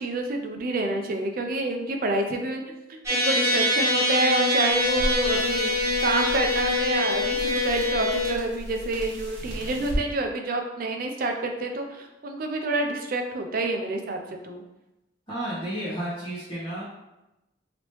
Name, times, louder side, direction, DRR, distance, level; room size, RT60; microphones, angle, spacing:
voice 1, 0.0-2.6 2.9-5.7 6.0-14.6, right 2 dB, 50° right, 4 dB, 0.4 m, -28 dB
sound 1, 3.1-8.3, left 1 dB, 15° right, 0.9 m, -24 dB
sound 2, 4.7-10.0, equal, 80° right, 1.2 m, -35 dB
voice 2, 15.3-16.8, right 1 dB, 25° left, -13 dB, 1.1 m, -32 dB
3.1 x 2.9 x 3.0 m, 0.96 s
head